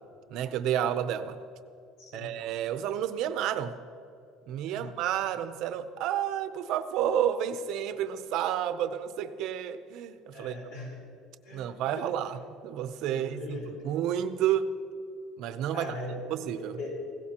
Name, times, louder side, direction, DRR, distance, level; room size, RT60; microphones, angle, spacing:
voice 1, 0.3-1.4 2.1-3.7 4.5-10.5 11.5-14.7 15.4-15.9 16.3-16.8, right 10 dB, 55° right, 11 dB, 0.6 m, -30 dB
voice 2, 2.0-2.3 4.7-4.9 10.3-11.0 11.4-12.1 13.1-13.8 15.7-16.2 16.6-17.0, left 2 dB, 75° left, -2 dB, 3.8 m, -40 dB
17.0 x 16.5 x 2.9 m, 2.5 s
cardioid pair, 170°, 0 cm